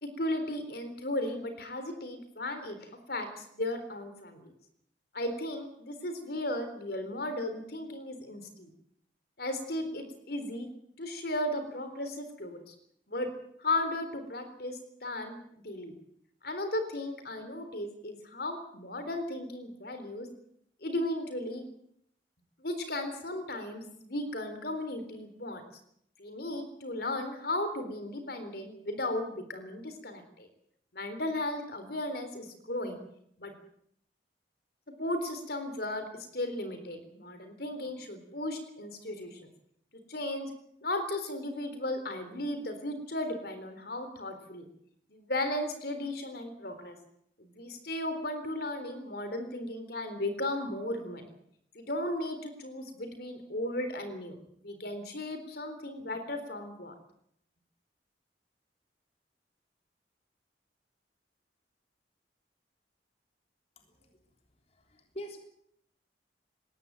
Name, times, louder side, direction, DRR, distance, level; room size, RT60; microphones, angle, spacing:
voice 1, 0.0-4.5 5.1-8.7 9.4-10.7 11.0-12.7 13.1-13.3 13.6-15.4 15.6-15.9 16.4-20.3 20.8-21.6 22.6-25.6 26.2-30.5 30.9-33.0 33.4-33.5 35.0-36.1 36.3-39.4 40.1-40.5 40.8-44.7 45.1-47.0 47.4-51.3 51.7-54.4 54.6-56.9, left 1 dB, 60° left, 9 dB, 3.9 m, -35 dB
voice 2, 63.8-64.2 64.7-65.4, equal, 35° left, 4 dB, 3.5 m, -45 dB
20.5 x 16.0 x 9.3 m, 0.70 s
head